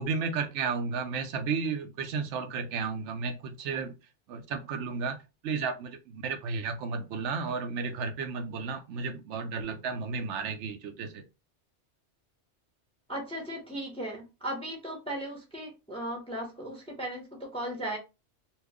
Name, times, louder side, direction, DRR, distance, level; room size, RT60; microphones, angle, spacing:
voice 1, 0.0-3.9 4.3-5.2 5.4-11.2, right 5 dB, 75° right, 1.0 m, -33 dB
voice 2, 13.1-18.0, right 1 dB, 5° left, 0.8 m, -37 dB
2.9 x 2.3 x 3.5 m
omnidirectional pair, 1.2 m